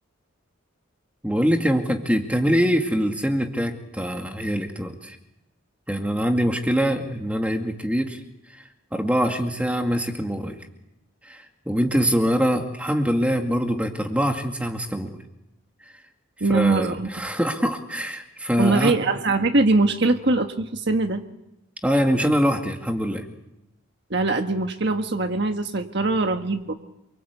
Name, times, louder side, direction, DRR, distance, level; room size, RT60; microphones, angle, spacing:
voice 1, 1.2-5.2 5.9-8.2 8.5-10.6 11.2-15.2 16.5-18.9 21.8-23.3, equal, 5° right, 3 dB, 2.2 m, -24 dB
voice 2, 16.4-17.1 18.6-21.2 24.1-26.7, right 3 dB, 55° right, 5 dB, 1.5 m, -22 dB
28.0 x 24.0 x 8.3 m, 0.86 s
head